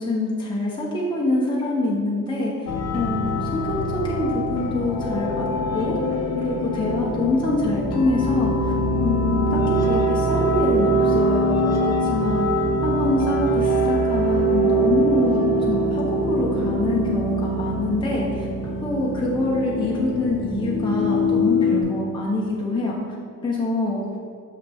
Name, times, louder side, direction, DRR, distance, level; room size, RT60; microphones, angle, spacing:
voice 1, 0.0-2.5 2.9-5.5 5.7-6.0 6.4-8.7 9.0-11.8 12.1-12.5 12.8-18.5 18.8-22.9 23.4-24.0, left 2 dB, 15° left, -5 dB, 0.9 m, -25 dB
sound 1, 2.7-21.8, equal, 50° left, 0.8 m, -23 dB
6.8 x 5.7 x 3.5 m, 2.3 s
cardioid pair, 135°, 33 cm